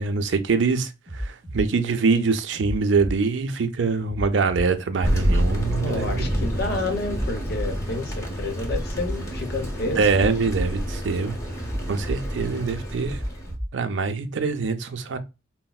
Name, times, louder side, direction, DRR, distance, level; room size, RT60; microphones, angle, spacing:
voice 1, 0.0-6.3 9.9-11.4 11.9-13.2 13.7-15.2, right 4 dB, 70° right, 0.5 m, -24 dB
sound 1, 1.1-1.7 2.6-3.2 4.1-4.7 5.6-6.2 7.1-7.7 8.6-9.2 10.1-10.7 11.6-12.2 13.1-13.7 14.6-14.7, equal, 20° right, 0.5 m, -31 dB
Thunder, 5.0-13.5, equal, 15° left, 0.8 m, -28 dB
voice 2, 5.8-10.3, left 2 dB, 55° left, 0.8 m, -30 dB
4.0 x 2.1 x 2.3 m
head